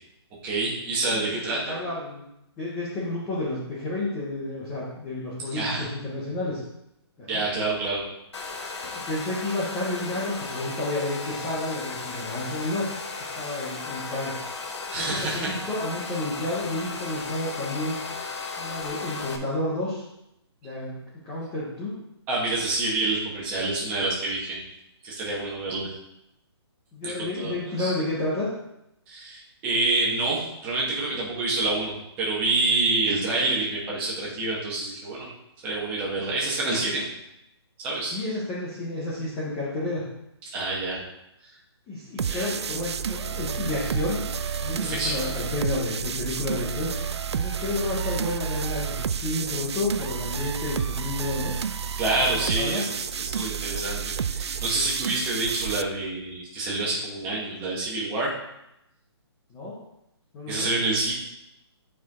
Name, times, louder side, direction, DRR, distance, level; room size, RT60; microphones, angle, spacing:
voice 1, 0.4-1.6 5.5-5.9 7.3-8.0 14.9-15.5 22.3-24.6 25.0-25.9 27.0-27.5 27.8-27.9 29.1-35.3 35.6-37.0 37.8-38.2 40.5-41.0 42.3-42.5 44.8-45.2 52.0-52.8 53.2-58.3 60.5-61.1, right 2 dB, 10° right, -5 dB, 1.2 m, -27 dB
voice 2, 1.1-2.2 2.6-6.6 7.2-7.4 8.9-12.8 13.4-14.3 15.0-18.0 18.6-20.0 20.6-21.0 21.2-21.9 26.9-28.5 38.1-40.0 41.9-44.3 44.6-46.9 47.3-51.5 52.1-52.8 59.5-59.8 60.3-60.7, left 2 dB, 5° left, -8 dB, 0.4 m, -31 dB
Domestic sounds home sounds, 8.3-19.4, left 4 dB, 80° left, 1.1 m, -35 dB
sound 1, 42.2-55.8, right 7 dB, 70° right, 0.4 m, -30 dB
8.4 x 4.6 x 3.5 m, 0.84 s
hypercardioid pair, 175°, 14 cm